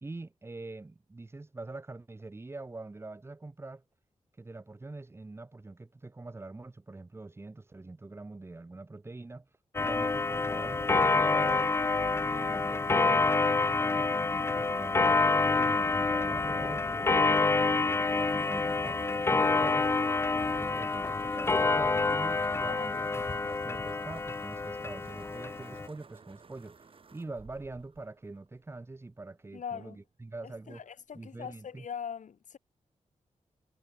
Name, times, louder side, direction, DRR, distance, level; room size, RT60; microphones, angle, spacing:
voice 1, 0.0-3.8 4.4-9.5 9.8-11.7 12.2-19.9 20.3-26.8 27.1-30.9 31.1-31.9, right 2 dB, 20° right, 1.1 m, -44 dB
Clock, 9.7-25.9, left 3 dB, 20° left, 0.4 m, -27 dB
sound 1, 17.9-29.0, right 5 dB, 45° right, 6.5 m, -56 dB
voice 2, 22.6-23.1 29.5-30.0 30.4-32.6, left 7 dB, 90° left, 3.0 m, -42 dB
wide cardioid pair, 155°, 12 cm